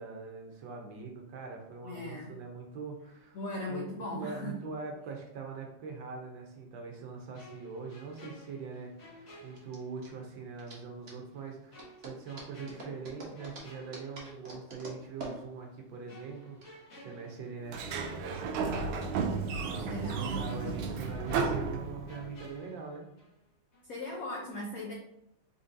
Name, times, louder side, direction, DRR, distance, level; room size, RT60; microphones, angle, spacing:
voice 1, 0.0-3.4 3.7-11.7 12.0-17.8 18.1-23.1, right 4 dB, 70° right, 2 dB, 1.4 m, -43 dB
voice 2, 1.8-2.3 3.3-4.6 19.6-20.7 23.8-24.9, left 2 dB, 80° left, -1 dB, 0.7 m, -39 dB
sound 1, 7.3-10.3 10.6-10.8 11.7-14.7 15.0-15.2 16.1-19.1 19.4-19.5 20.4-23.5 23.7-24.0, equal, 40° left, 1.2 m, -53 dB
sound 2, 7.7-16.7, right 2 dB, 45° right, 0.8 m, -48 dB
Sliding door, 17.7-22.4, right 4 dB, 90° right, 1.5 m, -33 dB
4.3 x 3.9 x 2.5 m, 0.81 s
omnidirectional pair, 2.3 m